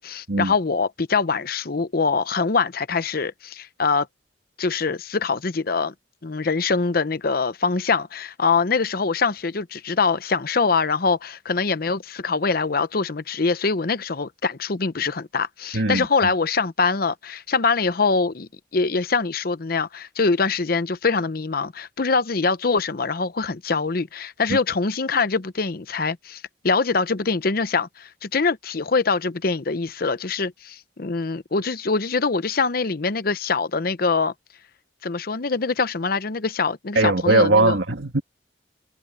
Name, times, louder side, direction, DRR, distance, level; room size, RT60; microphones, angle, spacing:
voice 1, 0.0-4.1 4.6-5.9 6.2-34.3 35.0-37.8, left 4 dB, 55° left, 0.8 m, -24 dB
voice 2, 15.7-16.3 24.5-24.6 37.0-38.2, right 2 dB, 85° right, 2.0 m, -20 dB
head